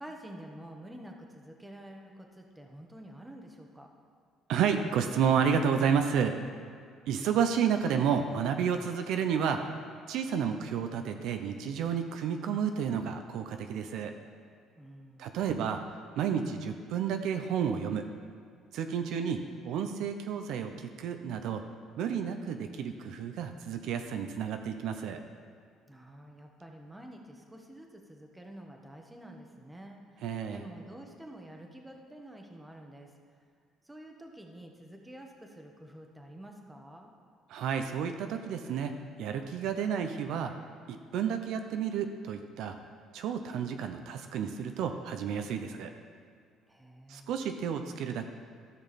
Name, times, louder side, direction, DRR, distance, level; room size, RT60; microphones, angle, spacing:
voice 1, 0.0-3.9 14.8-15.4 25.9-33.1 33.8-37.1 46.7-47.4, right 1 dB, 10° right, 2 dB, 1.1 m, -48 dB
voice 2, 4.5-6.4 7.1-9.7 10.1-14.2 15.2-15.8 16.2-18.1 18.7-21.6 22.0-25.2 30.2-30.6 37.5-38.9 39.2-40.5 40.9-42.8 43.1-45.9 47.1-48.3, right 7 dB, 75° right, 6 dB, 0.6 m, -31 dB
14.0 x 6.2 x 4.2 m, 2.2 s
cardioid pair, 110°, 0 cm